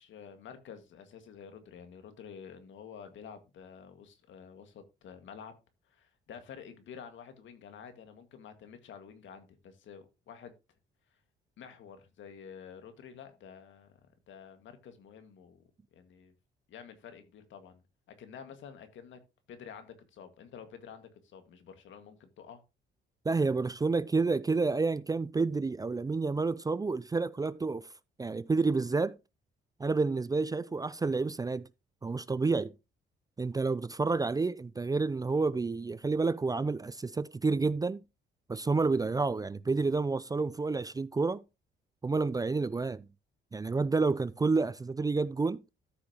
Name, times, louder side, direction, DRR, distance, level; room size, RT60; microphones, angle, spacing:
voice 1, 0.0-5.6 5.9-10.5 11.6-14.0 14.3-15.6 15.9-16.3 16.7-17.8 18.2-19.2 19.5-22.6, left 7 dB, 75° left, 1.8 m, -49 dB
voice 2, 23.3-27.9 28.2-29.2 29.8-31.7 32.0-32.7 33.4-38.0 38.5-41.4 42.0-43.1 43.5-45.6, right 3 dB, 20° right, 0.4 m, -29 dB
13.5 x 6.0 x 2.9 m
cardioid pair, 90°, 20 cm